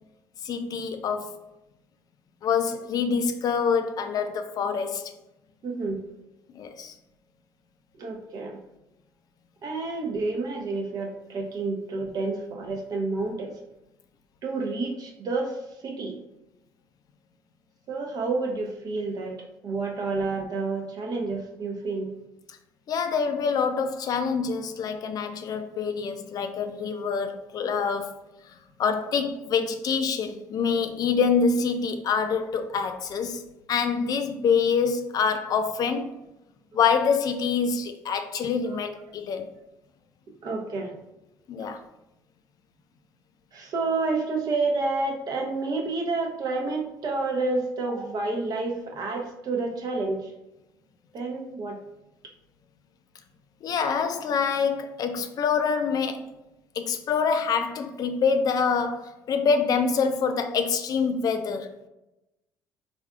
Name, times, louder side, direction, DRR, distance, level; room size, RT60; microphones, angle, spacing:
voice 1, 0.4-1.3 2.4-5.1 6.5-6.9 22.9-28.2 28.5-33.4 33.7-36.1 36.7-39.5 41.5-41.8 53.6-56.3 56.8-61.8, left 5 dB, 50° left, 0.4 m, -26 dB
voice 2, 5.6-6.0 8.0-8.6 9.6-13.5 14.4-15.6 15.8-16.2 17.9-19.4 19.6-22.2 40.4-40.9 43.5-50.3 51.1-51.8, right 3 dB, 55° right, 0.7 m, -29 dB
3.3 x 2.4 x 2.4 m
hypercardioid pair, 55°, 8 cm